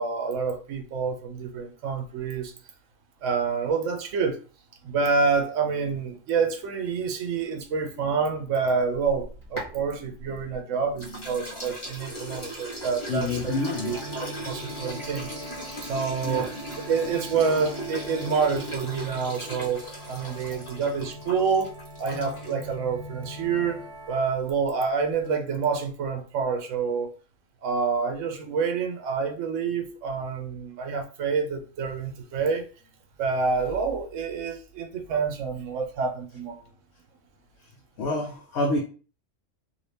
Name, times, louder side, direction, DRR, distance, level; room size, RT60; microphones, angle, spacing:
voice 1, 0.0-2.5 3.2-4.4 4.8-13.6 13.8-15.3 15.8-16.5 16.9-23.8 24.1-27.1 27.6-32.7 33.2-36.6, right 5 dB, 80° right, 1.0 m, -27 dB
sound 1, 9.1-10.6 11.0-22.7, right 1 dB, 25° left, 1.0 m, -38 dB
voice 2, 13.1-14.0 16.2-16.5 20.3-20.5 38.0-38.8, left 2 dB, 65° left, 0.9 m, -28 dB
sound 2, 13.5-24.2, equal, 55° right, 1.5 m, -42 dB
2.7 x 2.7 x 3.3 m
omnidirectional pair, 1.3 m